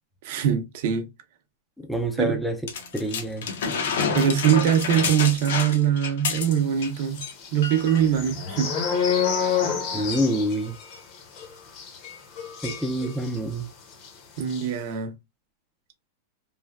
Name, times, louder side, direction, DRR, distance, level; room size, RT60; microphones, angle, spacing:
voice 1, 0.2-1.1 2.2-2.4 4.1-7.2 7.5-8.7 14.4-15.1, right 9 dB, 50° right, 0.6 m, -22 dB
voice 2, 1.8-2.6 2.9-3.5 9.9-10.7 12.6-13.7, equal, ahead, 0.3 m, -26 dB
sound 1, 2.7-6.9 7.2-7.3 7.6-8.1 8.8-8.9, left 5 dB, 75° left, 0.8 m, -28 dB
sound 2, 6.9-13.6 13.9-14.1 14.4-14.7, left 7 dB, 35° left, 0.7 m, -29 dB
3.1 x 2.2 x 2.2 m
supercardioid pair, 165°, 0 cm